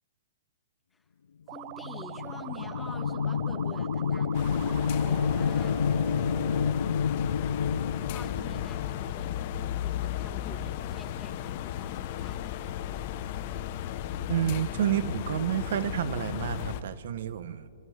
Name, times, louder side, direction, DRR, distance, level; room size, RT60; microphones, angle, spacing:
voice 1, 1.5-6.0 8.1-12.6, left 3 dB, 10° left, 6 dB, 1.5 m, -48 dB
sound 1, 1.5-6.7, right 17 dB, 40° right, 0.4 m, -43 dB
sound 2, 1.7-9.4, left 6 dB, 85° left, 0.4 m, -29 dB
sound 3, 4.3-16.8, left 11 dB, 40° left, 0.9 m, -35 dB
voice 2, 14.3-17.7, right 10 dB, 60° right, 14 dB, 0.8 m, -29 dB
29.5 x 26.0 x 3.4 m, 2.8 s
hypercardioid pair, 150°, 0 cm